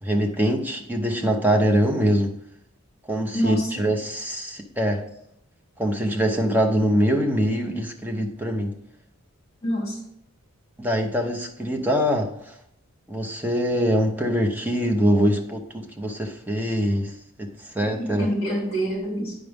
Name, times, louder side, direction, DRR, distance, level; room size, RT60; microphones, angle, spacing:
voice 1, 0.0-2.3 3.1-5.0 5.8-8.7 10.8-12.5 13.1-17.1 17.4-18.3, equal, 10° right, 3 dB, 0.7 m, -23 dB
voice 2, 3.3-3.9 5.1-5.2 9.6-10.0 17.8-19.4, equal, 25° left, -2 dB, 2.5 m, -27 dB
9.3 x 5.0 x 3.5 m, 0.74 s
head